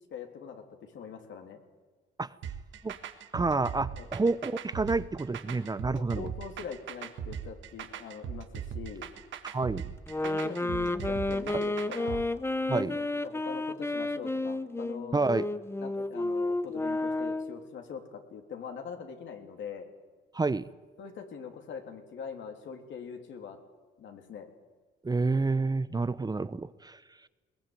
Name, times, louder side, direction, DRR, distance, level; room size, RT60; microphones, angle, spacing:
voice 1, 0.1-1.6 3.9-4.1 5.8-9.1 10.2-12.3 12.9-15.2 15.8-19.9 21.0-23.6 24.0-24.5, left 6 dB, 70° left, 4 dB, 3.4 m, -43 dB
sound 1, 2.4-12.2, right 8 dB, 70° right, 1.8 m, -39 dB
voice 2, 3.3-6.3 9.5-9.9 11.5-11.6 12.7-13.0 15.1-15.5 20.3-20.6 25.0-27.0, right 3 dB, 20° right, 15 dB, 0.8 m, -29 dB
sound 2, 10.1-17.6, left 2 dB, 10° left, 0.9 m, -31 dB
21.5 x 19.0 x 9.2 m, 1.4 s
cardioid pair, 90°, 20 cm